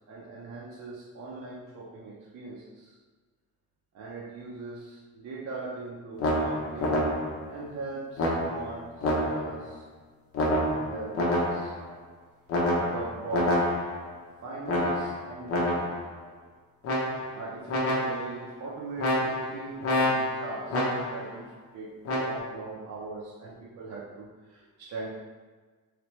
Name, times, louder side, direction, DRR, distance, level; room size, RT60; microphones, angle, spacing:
voice 1, 0.1-2.9 3.9-7.0 7.5-9.9 10.7-11.7 12.8-13.7 14.4-16.1 17.0-25.1, right 3 dB, 55° right, -5 dB, 0.6 m, -40 dB
sound 1, 6.2-7.5 8.2-9.6 10.3-11.9 12.5-14.1 14.7-16.1 16.8-17.4 17.7-18.4 19.0-21.3 22.0-22.4, left 1 dB, 45° left, 0.7 m, -28 dB
3.3 x 3.3 x 3.0 m, 1.4 s
cardioid pair, 175°, 32 cm